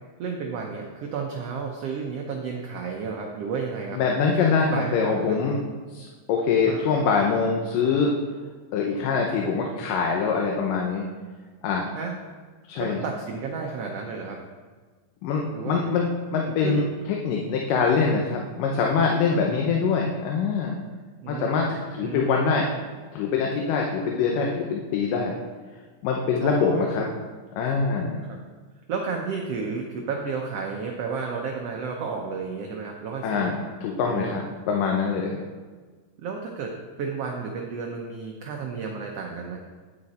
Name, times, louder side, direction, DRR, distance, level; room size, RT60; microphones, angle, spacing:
voice 1, 0.2-4.0 4.4-5.5 6.6-6.9 11.9-12.1 12.8-14.4 15.5-16.0 16.6-16.9 19.5-19.6 21.2-22.3 26.4-26.9 28.3-28.4 28.9-33.6 34.0-34.4 36.2-39.6, right 5 dB, 85° right, 1 dB, 1.3 m, -32 dB
voice 2, 3.9-5.6 5.9-8.1 8.7-11.0 11.6-11.9 12.7-13.0 15.2-16.1 16.3-20.7 21.3-22.7 23.1-25.4 26.0-27.1 27.6-28.2 33.2-35.4, left 5 dB, 80° left, 0 dB, 2.5 m, -24 dB
9.6 x 7.8 x 4.2 m, 1.4 s
omnidirectional pair, 3.9 m